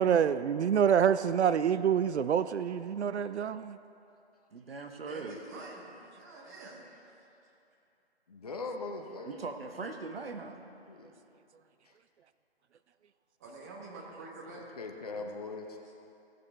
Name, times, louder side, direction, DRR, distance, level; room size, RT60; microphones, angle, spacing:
voice 1, 0.0-3.8, right 8 dB, 85° right, 14 dB, 0.5 m, -26 dB
voice 2, 4.5-5.4 9.2-10.6, right 4 dB, 60° right, 5 dB, 1.1 m, -40 dB
voice 3, 5.0-7.5 13.4-14.7 15.7-15.9, right 2 dB, 15° right, -3 dB, 1.1 m, -47 dB
voice 4, 8.3-9.4 10.9-11.1 14.8-15.7, left 3 dB, 35° left, 3 dB, 0.8 m, -40 dB
17.0 x 6.7 x 4.4 m, 2.8 s
figure-of-eight pair, 165°, 33 cm